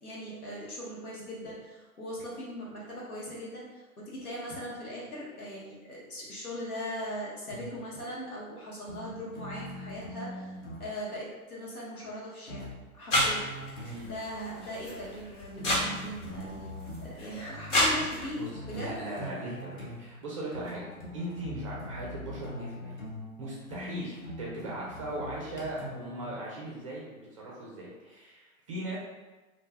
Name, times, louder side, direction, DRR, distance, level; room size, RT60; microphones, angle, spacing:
voice 1, 0.0-10.5 10.8-12.7 12.9-13.5 14.0-16.7 17.0-19.0, equal, 85° left, -5 dB, 1.2 m, -40 dB
sound 1, 7.5-8.0 8.9-10.9 12.5-14.2 15.6-17.2 18.5-26.3, equal, 35° left, 0.7 m, -42 dB
sound 2, 13.1-18.5, left 1 dB, 55° left, 1.3 m, -31 dB
voice 2, 18.4-20.9 21.1-22.9 23.4-29.0, right 1 dB, 25° right, -4 dB, 0.4 m, -39 dB
2.5 x 2.2 x 3.3 m, 1.2 s
hypercardioid pair, 130°, 43 cm